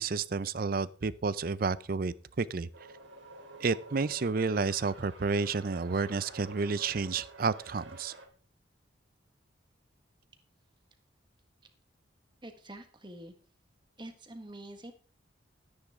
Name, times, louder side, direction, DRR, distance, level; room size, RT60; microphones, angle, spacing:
voice 1, 0.0-2.7 3.6-8.1, right 4 dB, 50° right, 0.5 m, -31 dB
sound 1, 2.7-8.3, right 2 dB, 75° right, 2.8 m, -49 dB
voice 2, 12.4-13.3 14.0-14.9, right 1 dB, 25° right, 1.6 m, -46 dB
13.0 x 10.0 x 3.7 m
head